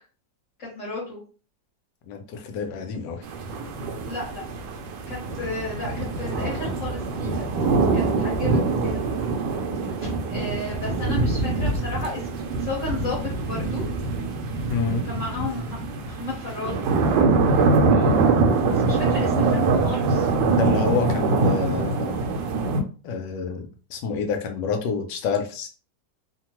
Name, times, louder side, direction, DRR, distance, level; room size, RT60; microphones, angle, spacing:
voice 1, 0.6-1.2 4.1-4.4 5.1-9.0 9.8-13.8 15.0-16.8 18.7-20.3, left 2 dB, 50° left, -5 dB, 1.2 m, -33 dB
voice 2, 2.1-3.2 14.7-15.0 17.9-18.2 20.4-22.2 23.0-25.7, left 5 dB, 75° left, 5 dB, 1.2 m, -28 dB
sound 1, 3.2-22.8, right 3 dB, 75° right, 1.2 m, -24 dB
3.1 x 2.2 x 2.9 m, 0.37 s
omnidirectional pair, 2.0 m